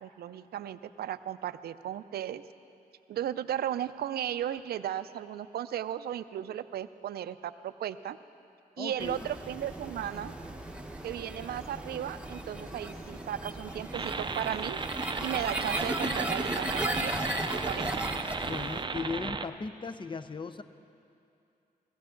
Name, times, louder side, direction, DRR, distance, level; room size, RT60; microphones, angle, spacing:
voice 1, 0.0-2.4 3.1-8.2 8.8-10.3 11.0-14.8 15.2-17.2 17.7-18.0, right 11 dB, 85° right, 13 dB, 0.4 m, -35 dB
voice 2, 8.8-9.3 18.4-20.6, left 4 dB, 30° left, 11 dB, 0.6 m, -37 dB
sound 1, 9.0-18.8, right 1 dB, 5° right, 1.1 m, -36 dB
sound 2, 13.9-19.5, right 4 dB, 30° right, 0.5 m, -35 dB
17.0 x 15.5 x 3.8 m, 2.6 s
cardioid pair, 75°, 16 cm